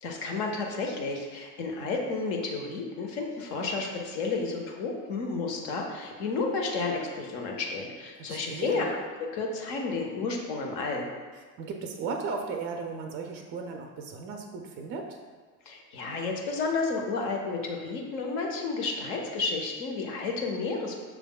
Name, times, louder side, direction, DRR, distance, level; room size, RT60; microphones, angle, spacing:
voice 1, 0.0-8.9 9.2-11.1 15.6-21.0, left 4 dB, 60° left, 1 dB, 0.9 m, -31 dB
voice 2, 8.2-8.9 11.6-15.2, right 4 dB, 30° right, 3 dB, 0.3 m, -36 dB
5.9 x 3.4 x 2.2 m, 1.4 s
figure-of-eight pair, 65°, 48 cm